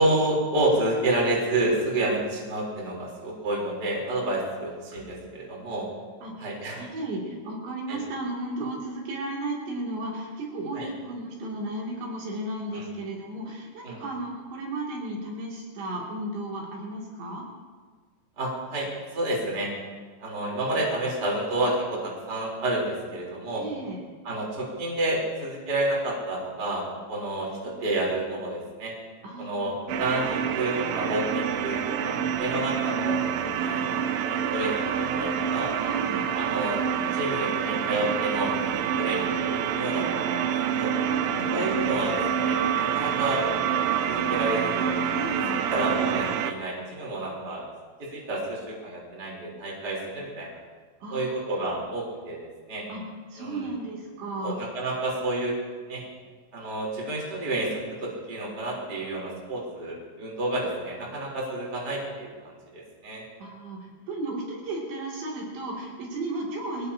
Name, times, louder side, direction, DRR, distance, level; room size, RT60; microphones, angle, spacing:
voice 1, 0.0-5.9 6.4-6.8 7.9-8.0 10.7-10.9 12.7-12.9 13.8-14.0 18.4-19.7 20.2-23.6 24.2-28.9 29.4-33.2 33.6-35.7 36.3-36.8 37.1-40.9 41.5-43.4 44.1-45.1 45.5-47.6 48.1-50.5 51.1-52.8 53.4-53.7 54.4-55.5 55.9-56.0 56.5-63.2, right 1 dB, 25° right, -3 dB, 3.8 m, -29 dB
voice 2, 6.8-17.4 23.6-24.0 29.2-29.7 35.8-36.3 41.0-41.5 45.1-45.7 51.0-51.4 52.9-53.0 53.3-54.6 63.4-66.9, right 2 dB, 65° right, -4 dB, 4.9 m, -34 dB
sound 1, 29.9-46.5, right 8 dB, 85° right, 3.3 m, -27 dB
23.0 x 19.0 x 2.9 m, 1.5 s
omnidirectional pair, 5.5 m